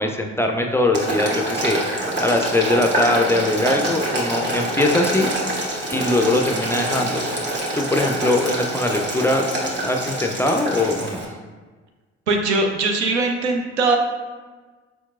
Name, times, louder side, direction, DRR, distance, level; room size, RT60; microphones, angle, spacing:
voice 1, 0.0-5.3 5.9-7.2 7.7-9.5 9.8-11.2, left 2 dB, 10° left, 3 dB, 0.4 m, -21 dB
Boiling, 0.9-11.2, right 1 dB, 35° right, 1.2 m, -25 dB
voice 2, 12.3-14.0, right 3 dB, 90° right, 3 dB, 0.5 m, -20 dB
4.4 x 4.1 x 2.3 m, 1.3 s
hypercardioid pair, 55°, 33 cm